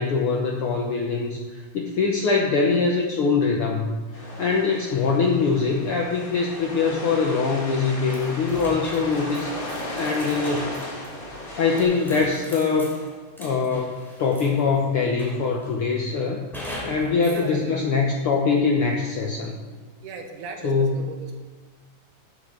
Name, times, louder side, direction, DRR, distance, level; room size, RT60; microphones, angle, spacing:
voice 1, 0.0-10.7 11.6-13.0 13.4-16.4 16.8-19.6 20.6-21.0, left 4 dB, 80° left, 0 dB, 1.2 m, -23 dB
sound 1, 4.1-11.8, left 1 dB, 30° left, 1.0 m, -35 dB
sound 2, 8.1-14.8 15.2-15.8 16.5-17.5, left 1 dB, ahead, 2.6 m, -40 dB
voice 2, 17.1-17.9 20.0-21.4, right 4 dB, 75° right, 4 dB, 2.5 m, -37 dB
8.4 x 8.3 x 6.5 m, 1.4 s
omnidirectional pair, 3.7 m